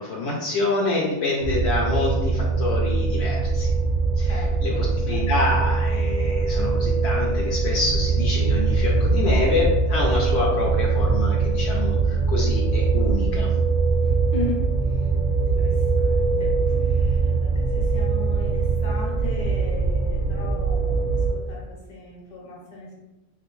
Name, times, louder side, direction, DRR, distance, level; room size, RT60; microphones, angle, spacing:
voice 1, 0.0-3.7 4.2-13.5, left 3 dB, 70° left, -3 dB, 0.8 m, -27 dB
sound 1, 1.4-21.3, right 4 dB, 60° right, 0.6 m, -22 dB
voice 2, 4.2-5.5 14.0-14.6 14.9-15.1 15.6-23.0, left 2 dB, 40° left, -3 dB, 0.8 m, -37 dB
3.2 x 2.5 x 3.0 m, 1.0 s
omnidirectional pair, 1.2 m